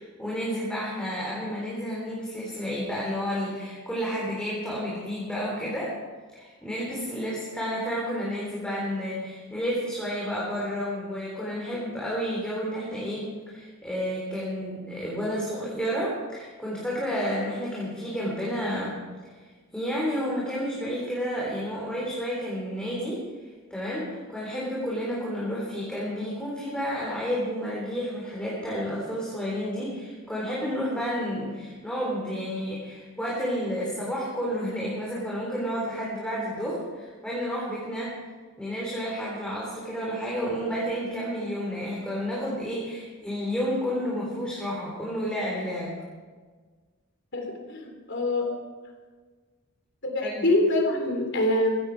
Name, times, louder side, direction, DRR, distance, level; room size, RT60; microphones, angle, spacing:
voice 1, 0.0-6.0 6.3-19.0 19.7-23.3 23.7-38.1 38.6-46.0 50.2-50.5, equal, 5° left, -6 dB, 3.5 m, -31 dB
voice 2, 47.3-48.5 50.0-51.8, left 1 dB, 55° left, 2 dB, 3.4 m, -25 dB
16.5 x 15.0 x 4.7 m, 1.4 s
head